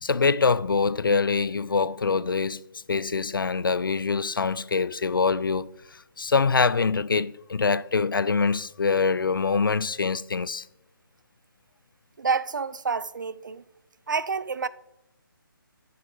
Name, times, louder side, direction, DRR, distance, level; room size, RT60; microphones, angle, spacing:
voice 1, 0.0-10.7, left 4 dB, 65° left, 0.4 m, -24 dB
voice 2, 12.2-13.6 14.1-14.7, right 5 dB, 55° right, 0.5 m, -28 dB
9.7 x 6.4 x 5.3 m
figure-of-eight pair, 145°, 12 cm